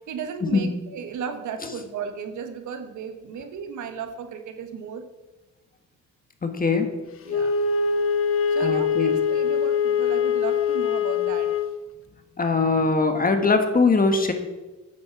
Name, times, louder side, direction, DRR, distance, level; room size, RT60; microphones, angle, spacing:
voice 1, 0.1-5.0 7.3-7.6 8.5-11.5, right 6 dB, 75° right, 8 dB, 1.3 m, -35 dB
voice 2, 6.4-6.9 8.6-9.2 12.4-14.3, left 4 dB, 30° left, 7 dB, 1.5 m, -21 dB
Wind instrument woodwind instrument, 7.3-11.8, left 6 dB, 45° left, 0.9 m, -23 dB
9.2 x 7.5 x 5.9 m, 1.2 s
cardioid pair, 90°, 30 cm